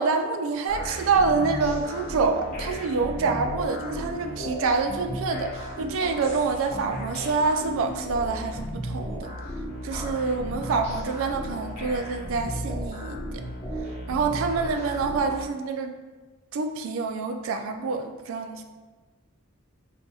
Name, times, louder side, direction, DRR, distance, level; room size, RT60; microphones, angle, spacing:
voice 1, 0.0-9.3 9.8-13.4 14.1-16.0 16.5-18.6, right 4 dB, 65° right, 6 dB, 0.3 m, -26 dB
sound 1, 0.7-15.4, equal, 30° left, 0.9 m, -35 dB
4.1 x 2.6 x 2.3 m, 1.3 s
head